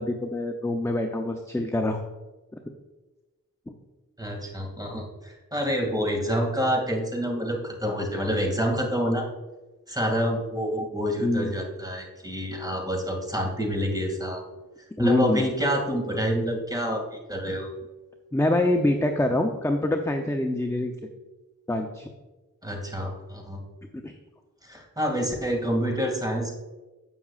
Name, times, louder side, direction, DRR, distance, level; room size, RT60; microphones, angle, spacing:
voice 1, 0.0-2.0 2.5-2.6 3.7-3.8 11.2-11.5 15.0-15.4 18.3-20.9 21.7-22.1 23.9-24.2, left 1 dB, 10° left, 4 dB, 0.6 m, -25 dB
voice 2, 4.2-9.3 9.9-14.4 15.0-17.7 22.6-23.6 24.6-26.5, equal, 10° right, 1 dB, 2.3 m, -27 dB
16.5 x 6.1 x 2.4 m, 1.2 s
wide cardioid pair, 70°, 35 cm